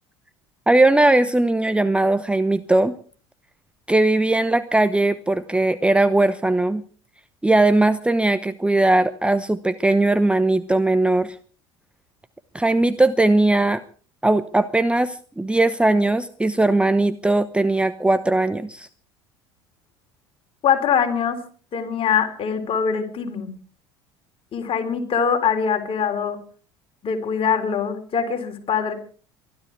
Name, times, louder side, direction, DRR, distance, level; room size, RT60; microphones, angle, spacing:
voice 1, 0.7-3.0 3.9-6.8 7.4-11.3 12.5-13.8 14.2-18.9, right 2 dB, 5° right, 12 dB, 0.9 m, -19 dB
voice 2, 20.6-21.4 21.7-23.5 24.5-26.4 27.0-28.9, left 7 dB, 40° left, 5 dB, 3.9 m, -23 dB
24.0 x 12.5 x 4.6 m, 0.42 s
hypercardioid pair, 70°, 15 cm